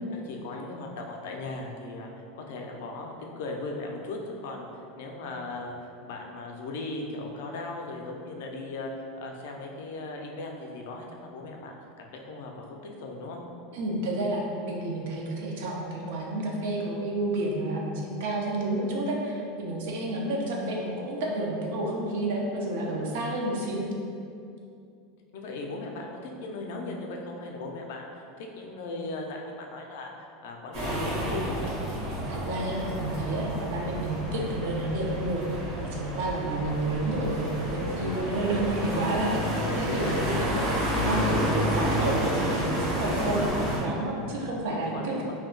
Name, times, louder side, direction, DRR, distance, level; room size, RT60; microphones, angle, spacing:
voice 1, 0.1-13.4 25.3-31.7 36.5-36.7 38.1-38.3 38.9-39.2 39.6-40.7 43.0-43.5 44.1-44.5 44.9-45.3, left 2 dB, 70° left, 1 dB, 0.4 m, -38 dB
voice 2, 13.7-23.8 32.3-35.5 35.8-39.4 39.8-40.4 41.0-43.4 43.8-45.3, right 1 dB, 70° right, -1 dB, 0.5 m, -30 dB
sound 1, 30.7-43.8, equal, 45° right, 0.9 m, -30 dB
2.2 x 2.2 x 3.6 m, 2.5 s
supercardioid pair, 165°, 0 cm